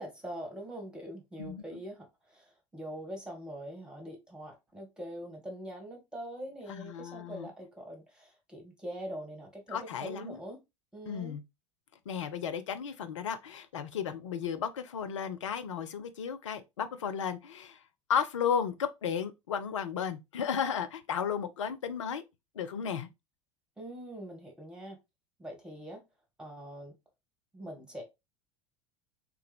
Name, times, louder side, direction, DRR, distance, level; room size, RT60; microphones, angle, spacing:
voice 1, 0.0-10.6 10.9-11.4 23.8-25.0 25.4-26.0 26.4-26.9 27.5-28.0, equal, 5° right, 1.7 m, -43 dB
voice 2, 6.7-7.5 9.7-10.4 11.1-11.4 12.1-17.8 18.1-22.2 22.6-23.1, left 7 dB, 70° left, 0.6 m, -34 dB
3.4 x 3.3 x 3.4 m
figure-of-eight pair, 75°, 16 cm